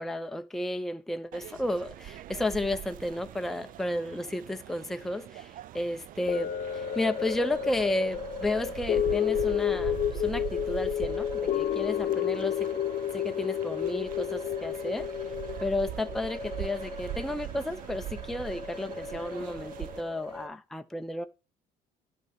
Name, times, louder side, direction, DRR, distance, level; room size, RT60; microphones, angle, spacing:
voice 1, 0.0-12.7 13.1-15.1 15.6-21.3, left 1 dB, ahead, 0.6 m, -32 dB
sound 1, 1.3-20.0, right 14 dB, 55° right, 0.4 m, -42 dB
sound 2, 6.3-16.6 17.1-17.2, left 10 dB, 50° left, 0.8 m, -31 dB
sound 3, 6.7-20.5, left 2 dB, 30° right, 3.0 m, -41 dB
11.0 x 5.4 x 4.5 m
cardioid pair, 110°, 17 cm